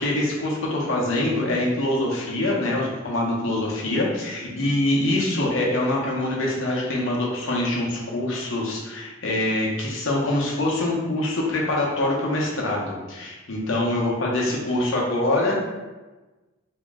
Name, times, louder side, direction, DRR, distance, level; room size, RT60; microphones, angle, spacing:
voice 1, 0.0-15.5, left 1 dB, 75° left, -3 dB, 0.8 m, -24 dB
3.0 x 2.8 x 3.5 m, 1.2 s
head